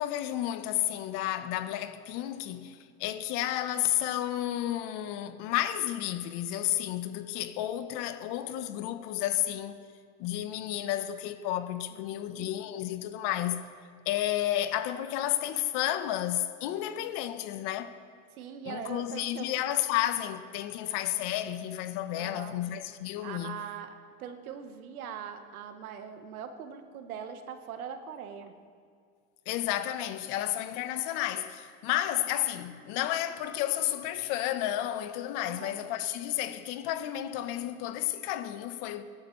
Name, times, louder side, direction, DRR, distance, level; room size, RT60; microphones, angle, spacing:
voice 1, 0.0-9.8 10.2-13.7 14.0-18.0 18.6-23.6 29.5-39.0, left 13 dB, 65° left, 1.2 m, -32 dB
voice 2, 11.9-12.5 18.4-19.6 22.2-22.5 23.2-23.9 24.2-28.5 35.4-35.8, right 7 dB, 90° right, 1.4 m, -42 dB
26.0 x 11.0 x 3.3 m
hypercardioid pair, 90°, 42 cm